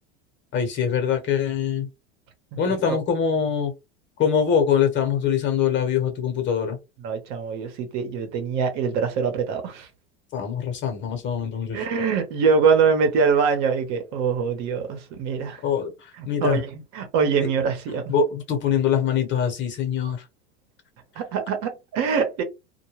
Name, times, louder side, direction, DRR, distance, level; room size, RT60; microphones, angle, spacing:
voice 1, 0.5-1.9 2.6-3.7 4.2-6.8 10.3-11.8 15.6-15.9 16.3-16.6 17.4-17.5 18.1-20.2, left 7 dB, 40° left, 1.0 m, -23 dB
voice 2, 2.6-3.0 7.0-9.9 11.7-15.6 16.2-18.0 21.2-22.4, right 5 dB, 60° right, 0.9 m, -24 dB
2.2 x 2.2 x 3.0 m
supercardioid pair, 110°, 31 cm